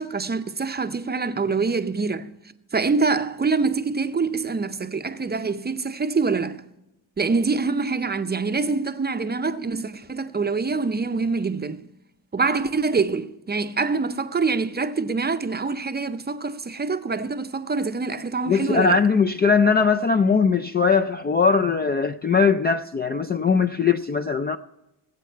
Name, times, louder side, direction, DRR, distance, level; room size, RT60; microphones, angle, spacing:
voice 1, 0.0-2.3 2.7-6.6 7.2-11.8 12.3-19.0, right 4 dB, 20° right, 0.6 m, -25 dB
voice 2, 18.5-24.6, left 5 dB, 25° left, 0.3 m, -20 dB
19.0 x 8.2 x 4.5 m
cardioid pair, 90°, 47 cm